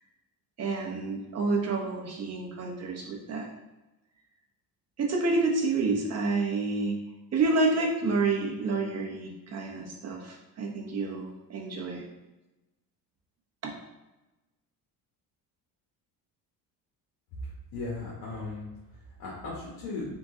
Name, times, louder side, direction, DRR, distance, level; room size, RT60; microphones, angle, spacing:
voice 1, 0.6-3.5 5.0-7.0 7.3-12.1 13.6-13.7, right 3 dB, 40° right, 0 dB, 0.9 m, -29 dB
voice 2, 17.4-18.7 19.2-20.1, left 3 dB, 80° left, -6 dB, 1.3 m, -37 dB
3.7 x 2.9 x 3.6 m, 1.0 s
cardioid pair, 115°, 40 cm